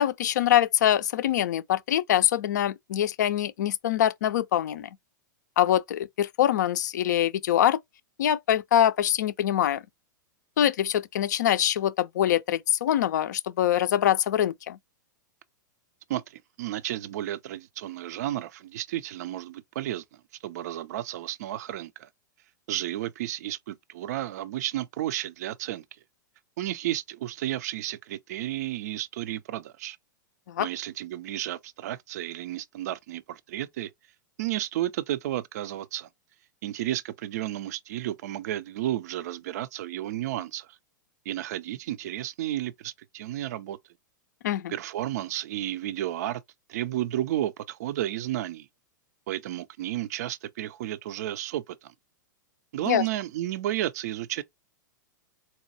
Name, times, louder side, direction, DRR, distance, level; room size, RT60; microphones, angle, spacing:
voice 1, 0.0-4.9 5.6-7.8 8.2-9.8 10.6-14.8 30.5-30.7 44.4-44.7 52.9-53.0, left 11 dB, 60° left, 0.4 m, -24 dB
voice 2, 16.1-20.0 20.4-22.1 22.7-25.8 26.6-30.0 30.6-33.9 34.4-36.1 36.6-40.8 41.3-43.8 44.7-46.4 46.7-48.7 49.3-51.9 52.7-54.4, right 13 dB, 55° right, 0.4 m, -32 dB
4.1 x 2.2 x 2.6 m
figure-of-eight pair, 100°, 11 cm